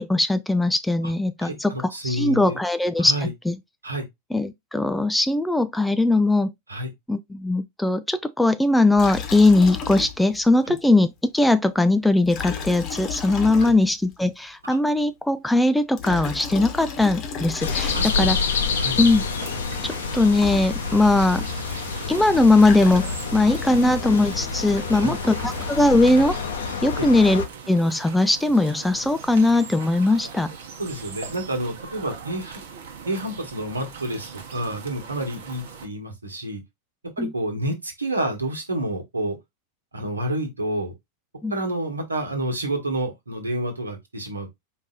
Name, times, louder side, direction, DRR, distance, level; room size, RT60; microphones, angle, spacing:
voice 1, 0.0-3.1 3.5-3.6 4.3-6.5 7.1-18.4 19.0-19.2 19.8-21.4 22.1-26.4 26.8-30.5 37.2-37.3 41.4-41.5, left 2 dB, 5° left, 0.3 m, -20 dB
voice 2, 1.4-2.6 3.0-3.3 3.8-4.1 6.7-6.9 10.6-10.7 13.6-13.7 14.6-14.8 17.9-18.3 18.8-19.0 24.9-25.1 26.9-27.1 30.8-32.6 33.0-36.6 37.2-39.4 39.9-40.9 41.5-44.5, right 1 dB, 80° right, 1.3 m, -29 dB
Liquid, 9.0-10.5 10.8-10.9 12.2-14.1 15.8-18.4 20.1-20.2 20.3-21.2 22.3-23.5, left 7 dB, 35° left, 1.0 m, -33 dB
sound 1, 17.6-27.5, left 5 dB, 65° left, 0.7 m, -28 dB
sound 2, 19.0-35.9, right 6 dB, 55° right, 1.0 m, -40 dB
4.6 x 2.7 x 3.7 m
figure-of-eight pair, 90°, 0 cm